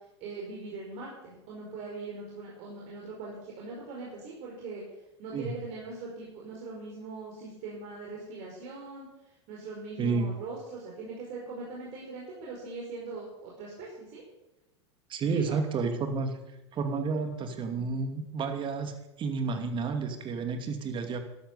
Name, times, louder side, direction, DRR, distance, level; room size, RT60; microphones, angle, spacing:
voice 1, 0.2-4.8 5.2-9.1 9.5-14.2 15.2-15.6, right 3 dB, 50° right, -3 dB, 5.0 m, -41 dB
voice 2, 10.0-10.3 15.1-16.4 16.7-21.2, right 4 dB, 35° right, 7 dB, 2.5 m, -31 dB
13.5 x 12.0 x 6.9 m, 0.94 s
hypercardioid pair, 90°, 15 cm